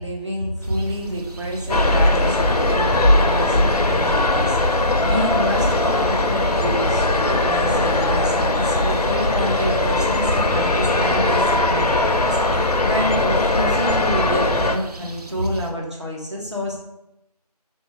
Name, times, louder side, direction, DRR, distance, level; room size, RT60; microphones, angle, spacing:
voice 1, 0.0-16.8, equal, 45° right, -2 dB, 0.9 m, -28 dB
sound 1, 0.6-15.7, right 2 dB, 70° right, 0.5 m, -38 dB
sound 2, 1.7-14.8, left 2 dB, 70° left, 0.4 m, -19 dB
3.1 x 2.9 x 3.5 m, 0.84 s
figure-of-eight pair, 175°, 21 cm